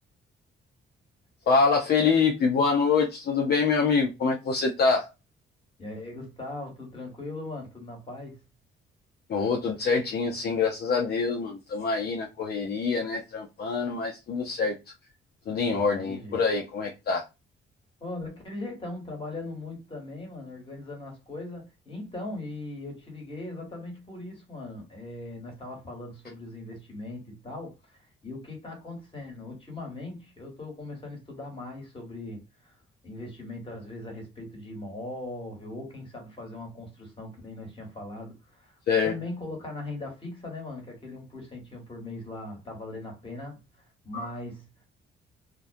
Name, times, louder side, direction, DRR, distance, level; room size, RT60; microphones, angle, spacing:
voice 1, 1.5-5.1 9.3-14.8 15.5-17.2 38.9-39.1 44.1-44.3, left 5 dB, 55° left, 0.5 m, -25 dB
voice 2, 5.8-8.4 15.8-16.4 18.0-28.0 28.2-32.8 33.0-43.6 44.0-44.8, left 2 dB, 25° left, 1.3 m, -39 dB
2.3 x 2.1 x 2.5 m
cardioid pair, 90°, 20 cm